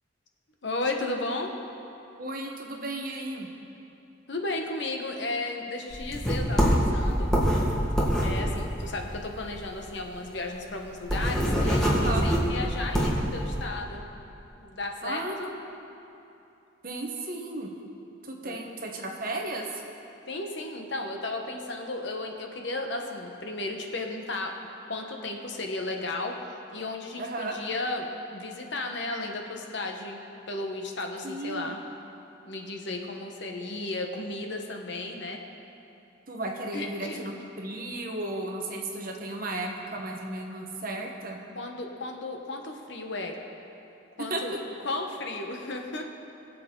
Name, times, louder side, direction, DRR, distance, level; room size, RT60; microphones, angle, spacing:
voice 1, 0.6-1.5 4.3-7.3 8.2-14.0 14.6-15.5 18.4-18.6 20.3-24.5 24.9-26.4 26.7-30.2 30.5-31.8 32.4-35.4 36.7-37.3 41.5-43.4 44.2-44.5 44.8-46.1, left 2 dB, 60° left, 2 dB, 1.2 m, -34 dB
voice 2, 2.2-3.5 11.9-12.2 15.0-15.7 16.8-17.7 18.2-19.8 27.2-27.6 31.2-31.8 36.3-41.4 44.3-44.4, right 2 dB, 45° right, 1 dB, 1.2 m, -34 dB
sound 1, 5.9-9.6 10.0-10.1 10.3-10.4 10.8-13.3, equal, 5° left, 1.6 m, -24 dB
22.5 x 7.6 x 3.9 m, 2.8 s
head